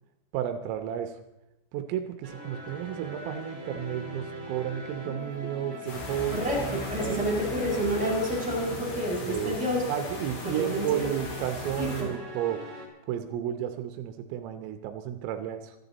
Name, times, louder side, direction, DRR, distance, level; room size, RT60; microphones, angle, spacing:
voice 1, 0.3-1.2 1.7-7.3 9.2-9.6 9.9-12.6 13.1-15.8, right 11 dB, 80° right, 8 dB, 3.5 m, -32 dB
sound 1, 2.2-12.9, equal, 20° right, 4.2 m, -42 dB
sound 2, 5.9-12.0, left 3 dB, 60° left, 6.4 m, -38 dB
voice 2, 6.3-9.8 10.4-11.1 11.8-12.1, equal, ahead, -4 dB, 5.3 m, -29 dB
27.5 x 11.0 x 4.1 m, 0.91 s
omnidirectional pair, 5.9 m